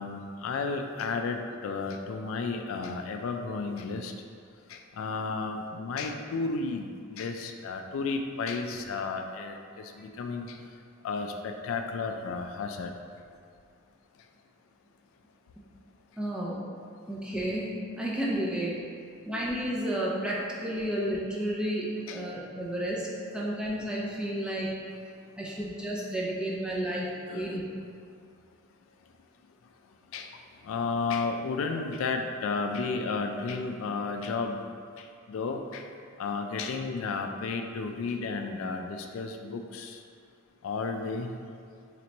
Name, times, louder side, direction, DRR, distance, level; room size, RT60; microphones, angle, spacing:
voice 1, 0.0-4.1 4.7-10.6 11.0-12.9 22.1-22.2 26.9-27.0 27.3-27.6 30.1-30.3 30.6-34.6 35.3-35.8 36.2-40.0 40.6-41.3, left 4 dB, 75° left, 4 dB, 0.3 m, -33 dB
voice 2, 16.2-16.6 17.1-18.7 19.3-23.1 23.3-24.7 25.4-27.1 27.3-27.6, right 1 dB, 5° right, -5 dB, 0.5 m, -31 dB
3.3 x 3.0 x 4.0 m, 2.2 s
head